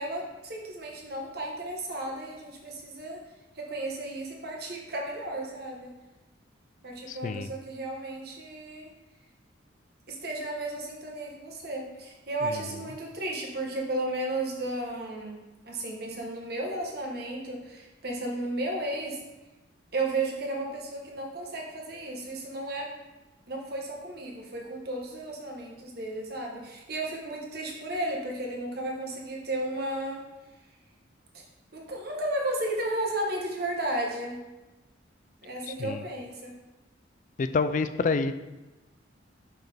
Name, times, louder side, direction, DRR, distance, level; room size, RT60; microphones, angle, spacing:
voice 1, 0.0-3.2 3.5-5.9 6.8-8.9 10.1-19.2 19.9-22.9 23.5-30.2 31.3-31.4 31.7-34.4 35.4-36.6, right 1 dB, 55° right, 0 dB, 1.2 m, -34 dB
voice 2, 7.1-7.5 12.4-12.6 35.7-36.0 37.4-38.3, left 4 dB, 40° left, 11 dB, 0.3 m, -28 dB
5.6 x 5.6 x 3.4 m, 1.1 s
head